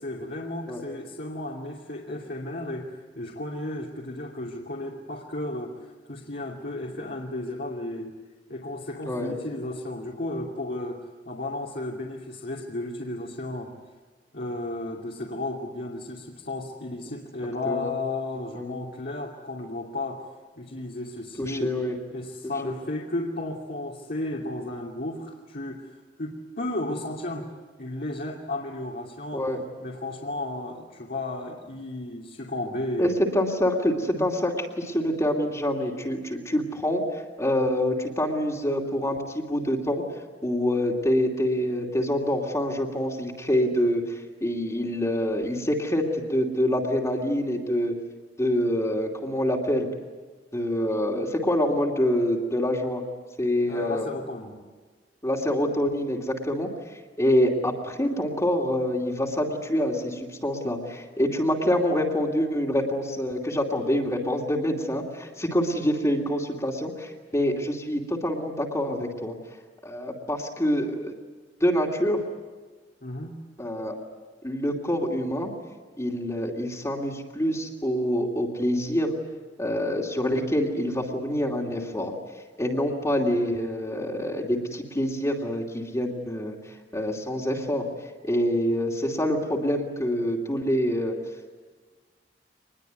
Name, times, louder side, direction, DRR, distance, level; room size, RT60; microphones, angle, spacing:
voice 1, 0.0-8.2 8.5-13.7 14.3-20.3 20.6-21.8 22.1-27.5 27.8-29.4 29.8-33.1 34.2-34.3 53.7-54.6 73.0-73.4, left 2 dB, 60° left, -2 dB, 2.8 m, -34 dB
voice 2, 9.0-9.3 17.6-17.9 18.5-18.8 21.4-22.0 22.6-22.7 29.3-29.6 33.0-40.0 40.4-47.9 48.4-49.9 50.5-53.0 53.4-54.1 55.2-69.4 69.8-71.1 71.6-72.2 73.6-74.0 74.4-75.5 76.0-79.1 79.6-82.1 82.6-87.9 88.2-91.2, equal, 15° left, -1 dB, 2.8 m, -26 dB
25.0 x 21.0 x 9.4 m, 1.4 s
head